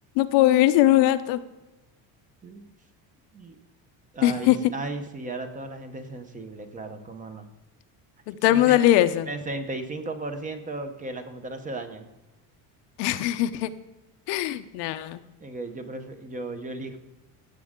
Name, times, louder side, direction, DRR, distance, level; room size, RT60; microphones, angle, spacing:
voice 1, 0.2-1.4 4.2-4.6 8.3-9.3 13.0-13.7 14.3-15.2, left 14 dB, 75° left, 10 dB, 0.8 m, -20 dB
voice 2, 4.1-7.5 8.5-8.8 9.3-12.1 15.4-17.0, right 2 dB, 20° right, 7 dB, 0.9 m, -35 dB
16.0 x 7.6 x 3.7 m, 1.0 s
cardioid pair, 160°, 43 cm